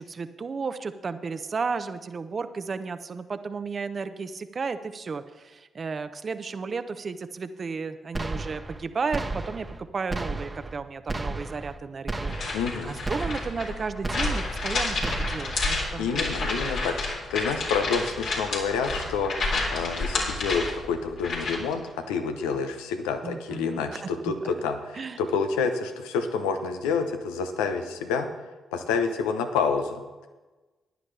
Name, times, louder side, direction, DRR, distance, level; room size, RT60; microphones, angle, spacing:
voice 1, 0.0-9.7 9.9-12.6 12.8-16.2 16.6-16.9 23.2-24.0 24.2-24.3 24.9-25.2, right 5 dB, 50° right, 11 dB, 0.8 m, -33 dB
sound 1, 8.1-8.8 9.1-9.8 10.1-10.8 11.1-11.8 12.1-12.8 13.0-13.7 14.0-14.7 15.0-15.7, right 2 dB, 25° right, 1.1 m, -33 dB
sound 2, 12.2-21.7, left 3 dB, 70° left, 3.4 m, -30 dB
voice 2, 12.5-13.0 16.0-28.3 28.7-30.3, left 5 dB, 85° left, 6 dB, 0.9 m, -28 dB
15.5 x 10.5 x 3.4 m, 1.2 s
hypercardioid pair, 45°, 0 cm